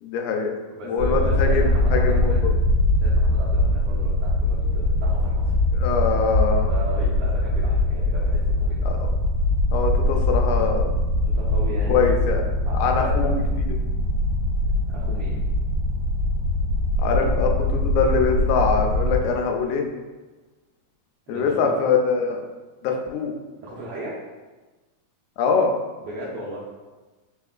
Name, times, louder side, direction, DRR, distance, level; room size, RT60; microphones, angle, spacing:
voice 1, 0.0-0.5 0.9-1.6 1.9-2.4 5.8-6.7 8.9-9.0 9.7-10.9 11.9-12.4 12.7-13.3 13.6-13.7 17.0-19.8 21.3-22.4 22.8-23.4 25.4-25.8, left 5 dB, 90° left, 2 dB, 2.0 m, -23 dB
voice 2, 0.7-2.4 3.0-5.5 6.7-9.0 11.2-12.0 12.7-13.2 14.6-15.4 17.1-17.2 21.3-21.8 23.6-24.2 26.0-26.6, right 1 dB, 90° right, -6 dB, 1.3 m, -36 dB
sound 1, 1.0-19.2, left 1 dB, 75° right, 1.5 m, -22 dB
4.4 x 3.6 x 2.4 m, 1.2 s
omnidirectional pair, 3.3 m